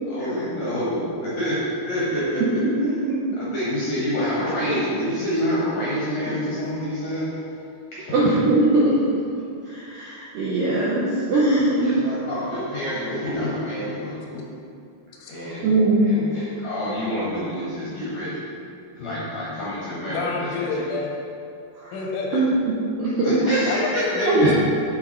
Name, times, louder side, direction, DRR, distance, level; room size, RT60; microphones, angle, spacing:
voice 1, 0.1-1.6 1.9-2.4 3.4-7.3 7.9-8.1 11.8-14.5 15.3-15.7 16.0-18.4 19.0-20.7 23.2-23.6 23.9-24.5, equal, 65° left, -9 dB, 1.8 m, -27 dB
voice 2, 2.6-3.4 8.1-8.9 9.6-11.9 15.6-16.2 21.8-21.9 22.3-22.5 23.0-23.7 24.3-24.5, right 2 dB, 80° right, -8 dB, 2.0 m, -21 dB
voice 3, 20.1-21.1 21.9-22.4 23.7-24.5, left 3 dB, 85° left, -1 dB, 3.3 m, -28 dB
8.0 x 4.5 x 4.3 m, 2.5 s
omnidirectional pair, 5.2 m